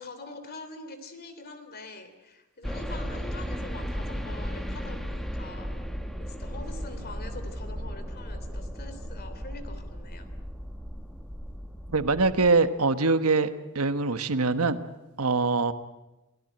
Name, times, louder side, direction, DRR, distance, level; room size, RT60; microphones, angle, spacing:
voice 1, 0.0-5.7 6.2-10.3, left 2 dB, 45° left, 9 dB, 3.2 m, -44 dB
sound 1, 2.6-12.5, equal, ahead, 1.9 m, -35 dB
voice 2, 11.9-14.8 15.2-15.7, right 3 dB, 75° right, 11 dB, 1.3 m, -23 dB
29.0 x 16.5 x 9.1 m, 0.99 s
head